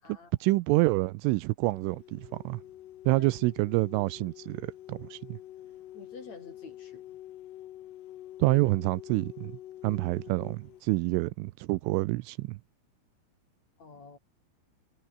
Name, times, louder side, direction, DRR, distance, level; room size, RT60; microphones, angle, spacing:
voice 1, 0.4-2.6 3.1-5.4 8.4-9.5 9.8-12.6, right 21 dB, 85° right, 3.1 m, -27 dB
sound 1, 1.7-10.8, left 13 dB, 85° left, 1.9 m, -47 dB
voice 2, 5.9-7.0 13.8-14.2, left 4 dB, 35° left, 6.9 m, -48 dB
omnidirectional pair, 5.8 m